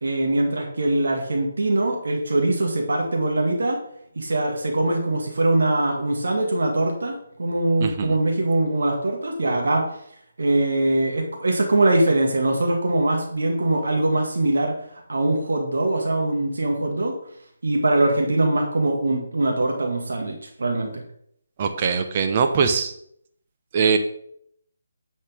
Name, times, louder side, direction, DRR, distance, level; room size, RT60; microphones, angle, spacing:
voice 1, 0.0-3.8 4.2-9.9 10.4-14.7 15.1-17.1 17.6-21.0, right 2 dB, 65° right, 1 dB, 1.9 m, -22 dB
voice 2, 7.8-8.2 21.6-22.9 23.7-24.0, right 5 dB, 35° right, 6 dB, 0.9 m, -21 dB
10.0 x 6.5 x 3.5 m, 0.68 s
figure-of-eight pair, 150°, 0 cm